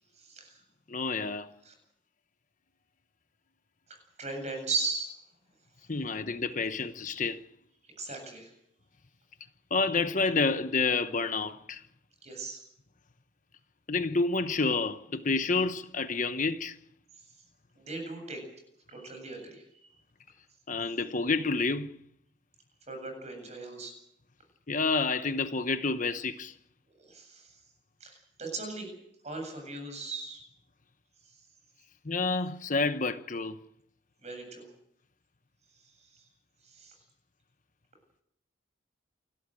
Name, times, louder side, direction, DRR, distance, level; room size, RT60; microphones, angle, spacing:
voice 1, 0.1-0.6 1.6-1.7 3.9-5.1 7.8-8.5 12.2-12.6 17.2-17.3 17.7-18.4 18.9-19.6 22.9-23.9 26.9-27.6 28.0-28.9 29.2-30.4 31.2-31.4 34.2-34.7 35.8-36.3 36.6-37.0, right 3 dB, 35° right, 7.8 m, -38 dB
voice 2, 0.9-1.5 5.9-7.4 9.7-11.8 13.9-16.8 20.7-22.0 24.7-26.5 32.0-33.6, left 4 dB, 40° left, 1.0 m, -29 dB
28.5 x 13.5 x 9.1 m
head